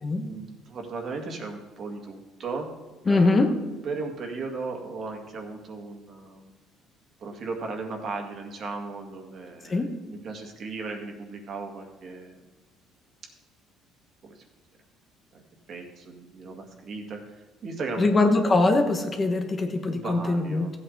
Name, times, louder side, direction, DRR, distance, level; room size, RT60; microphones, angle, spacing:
voice 1, 0.2-2.7 3.1-3.5 3.8-6.5 7.2-12.4 14.2-14.4 15.3-15.4 15.7-17.2 17.6-18.2 19.9-20.8, right 3 dB, 45° right, 3 dB, 2.0 m, -36 dB
voice 2, 3.1-3.5 9.6-9.9 18.0-20.8, left 2 dB, 25° left, 6 dB, 1.1 m, -22 dB
15.0 x 8.5 x 4.0 m, 1.3 s
cardioid pair, 125°, 0 cm